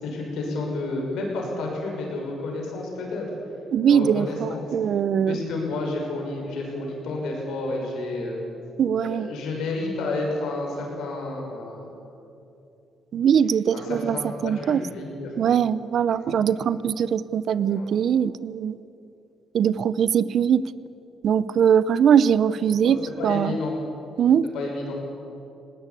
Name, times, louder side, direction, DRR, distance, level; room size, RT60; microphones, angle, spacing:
voice 1, 0.0-3.3 3.9-4.6 5.3-8.4 9.0-12.0 13.7-15.3 16.4-16.6 17.7-18.0 22.8-23.8 24.5-24.9, left 2 dB, 85° left, 0 dB, 6.2 m, -30 dB
voice 2, 3.7-5.4 8.8-9.3 13.1-14.8 15.4-18.8 19.5-20.6 21.2-23.6 24.2-24.4, right 8 dB, 65° right, 17 dB, 0.7 m, -21 dB
19.5 x 19.0 x 8.5 m, 2.8 s
cardioid pair, 90°, 0 cm